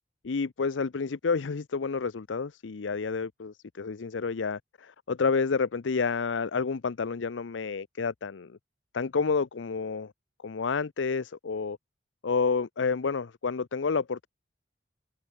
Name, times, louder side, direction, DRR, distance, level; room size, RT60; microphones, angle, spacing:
voice 1, 0.2-8.6 8.9-10.1 10.4-11.8 12.2-14.3, left 5 dB, 85° left, 0.6 m, -29 dB
head